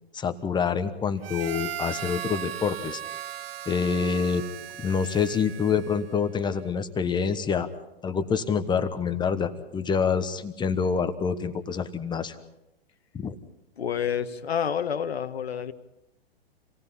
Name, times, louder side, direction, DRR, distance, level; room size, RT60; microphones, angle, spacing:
voice 1, 0.1-3.0 3.7-4.4 4.8-7.7 8.0-12.4 13.1-13.3, left 6 dB, 15° left, 9 dB, 1.2 m, -26 dB
Harmonica, 1.2-6.2, right 10 dB, 70° right, 0.8 m, -37 dB
voice 2, 13.8-15.7, left 8 dB, 80° left, 10 dB, 1.5 m, -28 dB
27.0 x 18.5 x 5.6 m, 0.91 s
hypercardioid pair, 120°, 31 cm